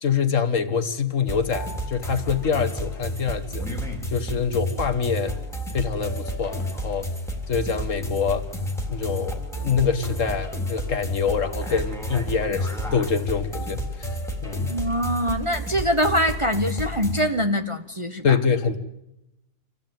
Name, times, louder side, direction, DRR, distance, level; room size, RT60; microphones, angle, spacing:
voice 1, 0.0-3.7 4.1-5.3 5.7-7.1 7.5-8.4 8.9-14.1 14.4-14.7 18.2-18.8, left 6 dB, 55° left, 10 dB, 1.6 m, -25 dB
sound 1, 1.3-17.3, equal, ahead, 3.3 m, -31 dB
voice 2, 14.7-18.4, equal, 20° right, 5 dB, 1.1 m, -24 dB
26.5 x 16.0 x 9.1 m, 0.91 s
omnidirectional pair, 1.6 m